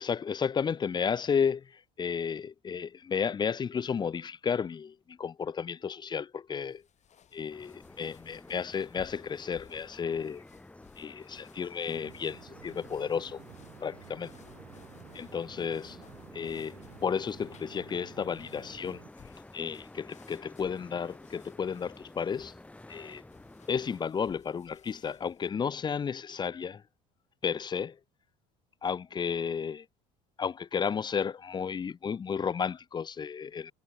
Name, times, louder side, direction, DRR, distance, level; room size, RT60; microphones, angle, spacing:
voice 1, 0.0-6.8 7.3-10.4 11.0-13.4 13.8-14.3 15.1-16.0 16.3-19.0 19.5-22.5 22.9-23.2 23.7-26.8 27.4-28.0 28.8-29.9 30.4-33.7, left 6 dB, 25° left, 0.6 m, -33 dB
sound 1, 6.6-25.5, left 9 dB, 40° left, 4.5 m, -60 dB
sound 2, 7.5-24.0, left 2 dB, 5° left, 1.0 m, -51 dB
sound 3, 11.9-19.1, right 26 dB, 80° right, 5.2 m, -54 dB
cardioid pair, 105°, 17 cm